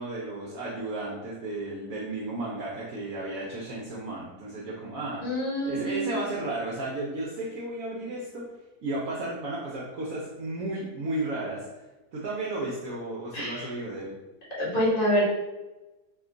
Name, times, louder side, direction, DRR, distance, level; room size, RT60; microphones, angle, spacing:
voice 1, 0.0-5.2 5.7-8.5 8.8-11.7 12.1-14.1, right 2 dB, 70° right, -5 dB, 1.0 m, -33 dB
voice 2, 5.2-6.2 13.3-13.6 14.6-15.2, equal, 35° left, -7 dB, 1.3 m, -26 dB
2.9 x 2.3 x 3.7 m, 1.1 s
omnidirectional pair, 1.6 m